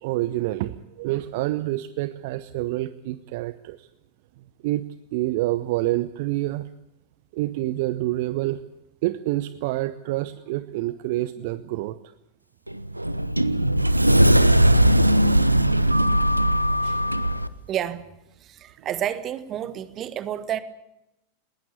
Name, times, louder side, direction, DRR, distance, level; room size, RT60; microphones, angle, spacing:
voice 1, 0.0-3.9 4.6-4.8 5.1-6.7 7.3-8.6 9.0-12.0 16.8-17.0, right 17 dB, 50° right, 14 dB, 0.9 m, -27 dB
Sliding door, 12.7-17.5, right 1 dB, 85° right, 1.0 m, -19 dB
voice 2, 17.7-18.1 18.4-20.6, right 10 dB, 30° right, 14 dB, 1.6 m, -30 dB
20.5 x 18.5 x 8.4 m, 0.87 s
figure-of-eight pair, 90°, 0 cm